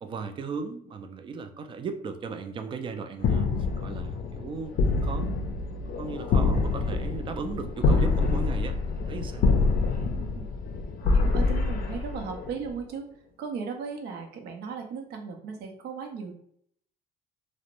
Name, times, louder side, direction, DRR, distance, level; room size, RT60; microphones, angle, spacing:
voice 1, 0.0-3.5 3.8-9.6, right 5 dB, 30° right, 7 dB, 0.3 m, -37 dB
sound 1, 3.2-12.7, left 3 dB, 60° left, 0.4 m, -26 dB
voice 2, 10.2-10.5 11.0-13.1 13.4-16.3, right 5 dB, 75° right, 3 dB, 0.6 m, -36 dB
2.4 x 2.0 x 2.9 m, 0.66 s
cardioid pair, 110°, 17 cm